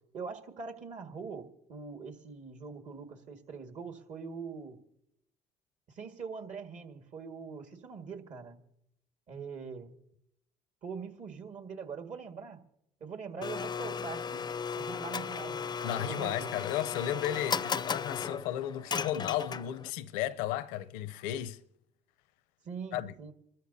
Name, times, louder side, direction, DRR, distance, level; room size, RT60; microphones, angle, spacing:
voice 1, 0.1-4.8 5.9-8.6 9.3-10.0 10.8-12.6 13.0-14.4 14.8-16.5 22.6-23.3, right 5 dB, 60° right, 1.8 m, -43 dB
Domestic sounds home sounds, 13.4-19.9, left 6 dB, 30° left, 0.4 m, -36 dB
voice 2, 15.8-21.6 22.9-23.1, left 12 dB, 85° left, 0.6 m, -34 dB
27.0 x 13.0 x 2.7 m
supercardioid pair, 60°, 14 cm